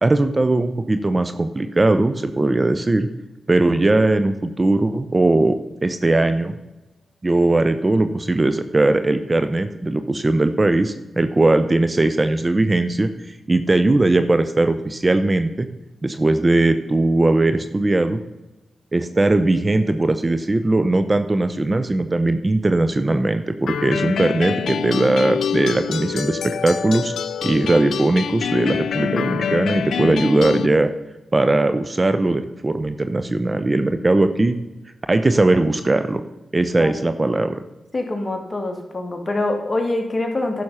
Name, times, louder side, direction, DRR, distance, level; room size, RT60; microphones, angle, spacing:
voice 1, 0.0-3.1 3.5-6.6 7.2-15.7 16.0-18.2 18.9-27.1 27.4-30.9 31.3-34.6 35.1-36.2 36.5-37.6, right 2 dB, 35° right, 10 dB, 0.8 m, -19 dB
sound 1, 23.7-30.7, left 7 dB, 80° left, 0.4 m, -26 dB
voice 2, 37.9-40.6, left 2 dB, 35° left, 3 dB, 2.4 m, -24 dB
11.0 x 6.3 x 5.6 m, 1.0 s
supercardioid pair, 45°, 0 cm